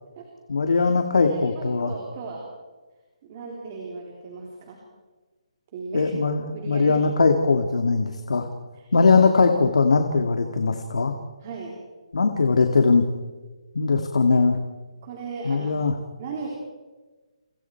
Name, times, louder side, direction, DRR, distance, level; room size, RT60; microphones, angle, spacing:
voice 1, 0.5-1.9 5.9-8.5 8.9-11.1 12.1-13.0 13.7-14.6 15.4-15.9, left 4 dB, 75° left, 5 dB, 2.2 m, -20 dB
voice 2, 1.1-2.4 3.2-4.8 5.7-6.1 6.5-7.0 8.7-8.9 11.4-11.8 15.0-15.8 16.2-16.5, right 4 dB, 25° right, -1 dB, 3.6 m, -36 dB
30.0 x 28.0 x 4.7 m, 1.3 s
hypercardioid pair, 180°, 3 cm